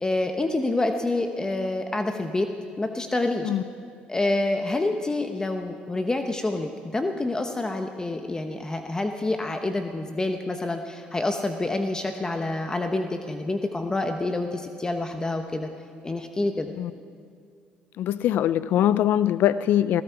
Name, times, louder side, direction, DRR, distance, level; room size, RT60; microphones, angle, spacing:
voice 1, 0.0-2.5 2.8-3.5 4.1-15.7 16.0-16.7, left 2 dB, 20° left, 6 dB, 1.0 m, -27 dB
voice 2, 18.0-20.0, left 11 dB, 70° left, 15 dB, 0.4 m, -22 dB
18.5 x 16.0 x 4.7 m, 2.2 s
supercardioid pair, 80°, 3 cm